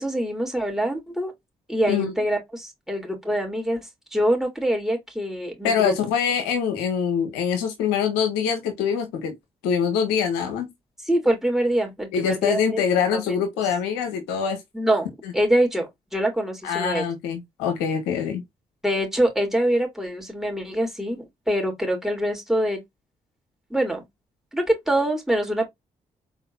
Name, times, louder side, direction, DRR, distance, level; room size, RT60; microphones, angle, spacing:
voice 1, 0.0-1.3 1.7-3.8 4.1-5.9 11.1-12.8 13.1-13.4 14.7-15.1 15.3-17.0 18.8-22.8 23.7-24.0 24.5-25.7, right 1 dB, ahead, 3.1 m, -24 dB
voice 2, 5.6-9.3 9.6-10.7 12.1-14.6 15.2-15.3 16.6-18.4, left 7 dB, 85° left, 1.2 m, -24 dB
4.4 x 4.0 x 2.6 m
hypercardioid pair, 40°, 17 cm